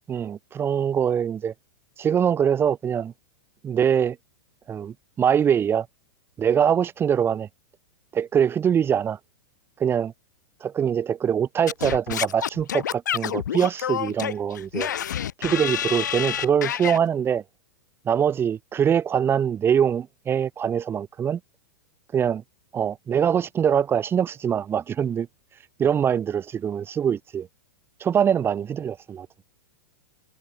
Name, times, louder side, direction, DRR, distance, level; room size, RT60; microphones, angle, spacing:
voice 1, 0.1-1.5 2.0-3.1 3.6-4.2 4.7-5.9 6.4-7.5 8.1-9.2 9.8-10.1 10.6-14.9 15.4-17.4 18.0-21.4 22.1-22.4 22.7-25.3 25.8-27.5 28.0-29.3, right 8 dB, 25° right, 5.9 m, -23 dB
Singing / Scratching (performance technique), 11.7-17.0, left 10 dB, 75° left, 1.6 m, -28 dB
hypercardioid pair, 110°, 10 cm